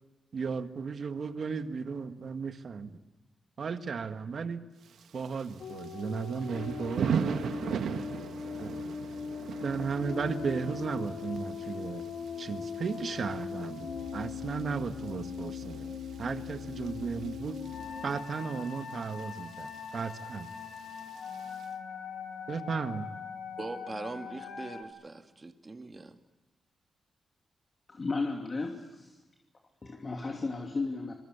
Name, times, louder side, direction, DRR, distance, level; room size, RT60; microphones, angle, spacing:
voice 1, 0.3-3.0 3.6-4.6 5.1-7.4 8.6-8.7 9.6-12.0 12.4-15.9 16.2-17.6 18.0-20.5 22.5-23.1, right 5 dB, 60° right, 1.7 m, -35 dB
Thunder / Rain, 4.8-21.7, right 7 dB, 85° right, 1.5 m, -40 dB
sound 1, 5.6-24.8, left 6 dB, 85° left, 3.0 m, -40 dB
voice 2, 23.6-26.2, right 3 dB, 30° right, 2.1 m, -41 dB
voice 3, 27.9-29.2 29.8-31.1, left 3 dB, 35° left, 2.7 m, -34 dB
27.5 x 22.5 x 8.2 m
cardioid pair, 90°, 0 cm